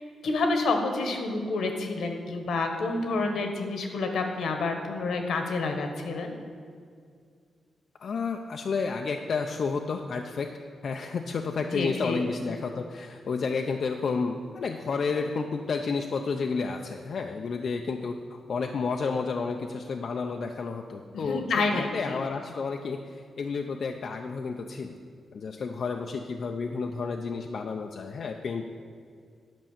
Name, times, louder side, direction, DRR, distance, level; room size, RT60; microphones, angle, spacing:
voice 1, 0.2-6.3 11.7-12.3 21.1-22.2, left 3 dB, 80° left, 4 dB, 1.3 m, -28 dB
voice 2, 8.0-10.5 10.8-23.0 23.4-25.0 25.3-28.6, left 4 dB, 55° left, 3 dB, 0.5 m, -31 dB
10.5 x 5.4 x 7.3 m, 2.2 s
wide cardioid pair, 125°, 0 cm